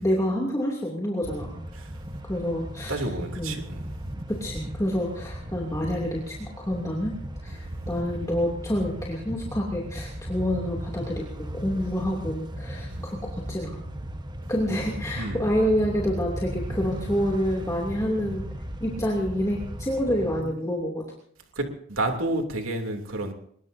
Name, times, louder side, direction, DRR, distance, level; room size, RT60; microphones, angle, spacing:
voice 1, 0.0-1.6 2.2-3.0 3.4-3.5 4.3-7.1 7.4-13.8 14.5-18.4 18.8-21.0, equal, 15° left, -2 dB, 2.8 m, -28 dB
sound 1, 1.2-20.4, right 1 dB, 20° right, 1.2 m, -37 dB
voice 2, 2.9-3.9 7.5-7.8 12.9-13.1 15.1-15.5 17.9-18.1 20.4-20.5 21.5-23.3, right 2 dB, 80° right, 4 dB, 3.0 m, -31 dB
23.5 x 21.5 x 2.8 m, 0.65 s
head